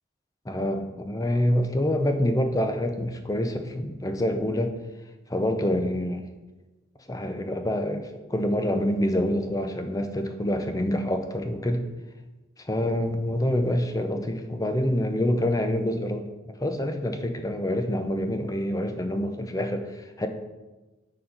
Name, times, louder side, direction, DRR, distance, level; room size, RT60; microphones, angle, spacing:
voice 1, 0.5-4.7 5.3-6.2 7.1-11.8 12.6-16.2 16.6-20.3, left 1 dB, 15° left, 6 dB, 0.5 m, -26 dB
6.7 x 4.2 x 5.5 m, 1.1 s
head